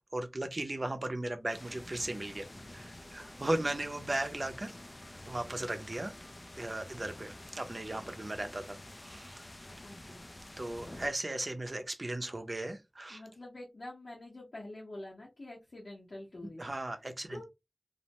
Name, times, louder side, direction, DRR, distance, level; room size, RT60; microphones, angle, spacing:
voice 1, 0.1-2.5 2.7-4.7 5.3-6.1 6.6-9.4 10.6-13.2 16.6-17.4, right 1 dB, 50° right, 0.5 m, -36 dB
sound 1, 1.5-11.1, left 1 dB, 40° left, 0.4 m, -49 dB
voice 2, 9.8-10.2 13.1-16.6 17.3-17.4, left 1 dB, 80° left, 1.0 m, -46 dB
2.5 x 2.1 x 2.8 m
wide cardioid pair, 50°, 0 cm